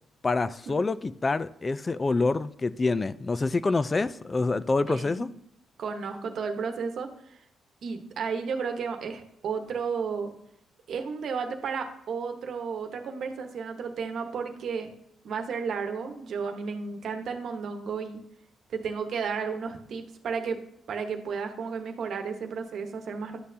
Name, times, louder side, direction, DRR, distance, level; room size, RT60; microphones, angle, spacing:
voice 1, 0.2-5.3, left 3 dB, 30° left, 0.3 m, -26 dB
voice 2, 4.9-5.3 5.8-7.4 7.8-10.3 10.9-14.9 15.2-18.2 18.7-20.6 20.9-23.4, right 5 dB, 65° right, 1.0 m, -33 dB
11.0 x 6.5 x 2.7 m
cardioid pair, 70°, 0 cm